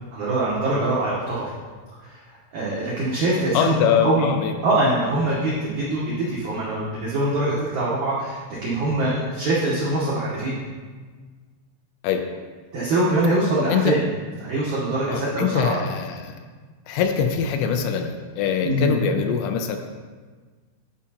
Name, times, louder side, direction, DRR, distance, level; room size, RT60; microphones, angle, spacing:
voice 1, 0.1-1.5 2.0-2.2 2.5-4.3 4.6-10.5 12.7-14.0 14.4-15.8 18.6-18.9, right 2 dB, 85° right, -7 dB, 1.7 m, -23 dB
voice 2, 3.5-4.8 12.0-12.3 13.6-14.0 15.1-16.4 16.9-19.8, left 7 dB, 85° left, 5 dB, 2.7 m, -23 dB
11.0 x 5.0 x 2.8 m, 1.5 s
omnidirectional pair, 5.2 m